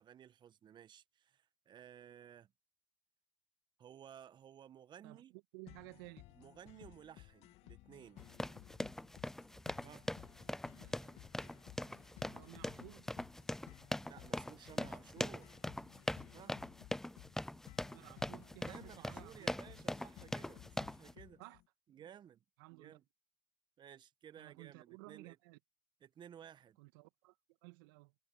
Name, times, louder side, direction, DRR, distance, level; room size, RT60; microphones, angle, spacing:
voice 1, 0.0-2.5 3.8-5.3 6.4-8.3 9.8-10.1 14.0-15.5 16.3-16.6 18.7-21.4 21.9-22.4 22.7-23.0 23.8-25.4 26.0-26.8, right 9 dB, 40° right, 1.3 m, -56 dB
voice 2, 5.0-6.5 10.8-11.2 12.3-13.1 17.9-19.6 21.4-21.6 21.9-22.1 22.6-23.0 24.4-25.6 26.8-27.4 27.6-28.1, right 27 dB, 70° right, 2.0 m, -56 dB
sound 1, 5.7-21.6, left 19 dB, 60° left, 2.6 m, -59 dB
sound 2, 8.2-21.1, left 1 dB, 5° left, 0.4 m, -42 dB
hypercardioid pair, 75°, 12 cm